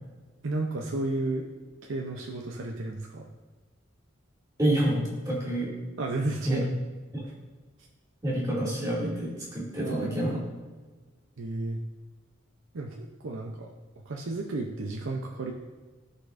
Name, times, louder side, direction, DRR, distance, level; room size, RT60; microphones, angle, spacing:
voice 1, 0.4-1.5 1.8-3.3 6.0-6.7 9.8-10.4 11.4-11.8 12.7-15.5, right 2 dB, 80° right, 1 dB, 0.7 m, -33 dB
voice 2, 4.6-5.7 6.4-6.6 7.1-7.2 8.2-10.4, right 1 dB, 20° right, -6 dB, 2.3 m, -28 dB
13.5 x 5.6 x 2.6 m, 1.3 s
head